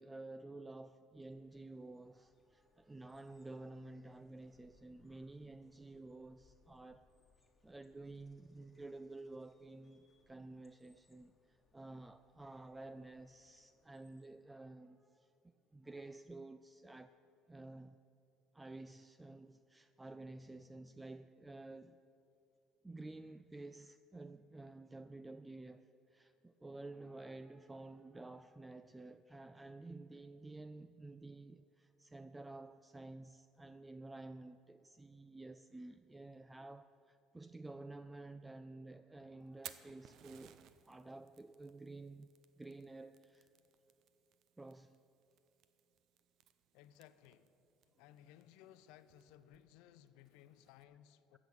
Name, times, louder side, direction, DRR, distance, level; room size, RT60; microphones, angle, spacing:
voice 1, 0.0-7.1 7.6-17.2 17.5-18.0 18.5-22.0 22.8-42.3 42.6-43.5 44.6-45.0, right 2 dB, 10° right, 0.3 m, -52 dB
sound 1, 1.0-14.3, left 3 dB, 20° left, 1.4 m, -75 dB
Fire, 39.4-50.8, right 10 dB, 60° right, 0.7 m, -61 dB
voice 2, 46.7-47.6 48.0-51.4, left 11 dB, 80° left, 0.6 m, -61 dB
14.5 x 6.3 x 8.8 m
supercardioid pair, 105°, 0 cm